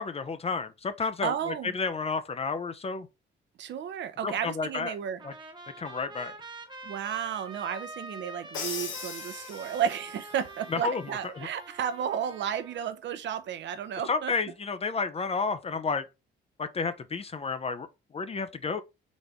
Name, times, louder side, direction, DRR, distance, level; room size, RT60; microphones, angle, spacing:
voice 1, 0.0-3.1 4.2-5.0 5.2-5.3 5.8-6.3 10.7-11.5 14.1-16.0 16.6-17.9 18.1-18.8, left 4 dB, 30° left, 0.5 m, -31 dB
voice 2, 1.0-1.8 3.6-5.2 6.8-14.3, right 8 dB, 65° right, 0.7 m, -33 dB
Trumpet, 5.2-12.9, right 2 dB, 25° right, 1.0 m, -45 dB
Crash cymbal, 8.5-10.2, left 6 dB, 90° left, 1.0 m, -38 dB
4.1 x 3.3 x 3.5 m
cardioid pair, 90°, 20 cm